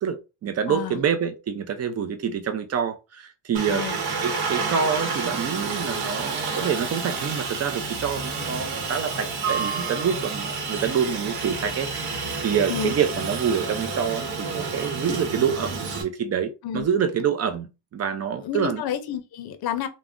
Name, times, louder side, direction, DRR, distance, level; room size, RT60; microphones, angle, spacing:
voice 1, 0.0-3.9 4.2-18.8, right 7 dB, 35° right, 0.5 m, -27 dB
voice 2, 0.7-1.0 3.7-4.0 12.7-12.9 16.6-16.9 18.4-19.9, left 9 dB, 60° left, 0.6 m, -30 dB
Aircraft, 3.5-16.0, right 4 dB, 60° right, 0.9 m, -29 dB
2.4 x 2.1 x 3.5 m
cardioid pair, 140°, 43 cm